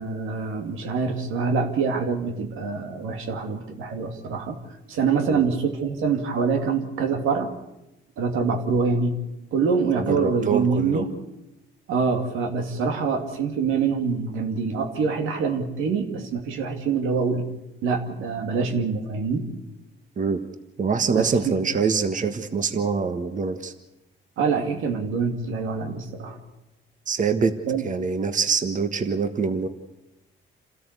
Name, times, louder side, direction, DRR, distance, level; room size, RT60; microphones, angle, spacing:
voice 1, 0.0-7.5 8.2-9.2 9.5-11.1 11.9-17.5 17.8-19.5 21.1-21.6 24.4-26.4 27.7-27.8, right 5 dB, 90° right, 4 dB, 2.6 m, -25 dB
voice 2, 9.9-11.0 20.2-20.4 20.8-23.7 27.1-27.5 27.8-29.7, right 5 dB, 40° right, 8 dB, 1.5 m, -24 dB
28.0 x 13.5 x 8.3 m, 0.95 s
cardioid pair, 90°, 20 cm